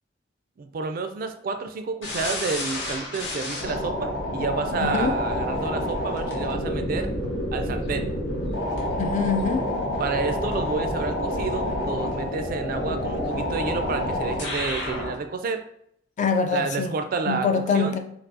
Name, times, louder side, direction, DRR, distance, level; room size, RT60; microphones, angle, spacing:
voice 1, 0.6-7.1 7.5-8.1 10.0-15.6 16.5-17.5 17.7-18.0, right 4 dB, 50° right, 7 dB, 0.3 m, -30 dB
sound 1, 2.0-15.2, left 1 dB, 75° left, 0.9 m, -28 dB
voice 2, 4.8-5.1 9.0-9.6 16.2-16.9 17.3-18.0, left 5 dB, 40° left, 7 dB, 0.3 m, -24 dB
4.5 x 2.0 x 2.6 m, 0.72 s
head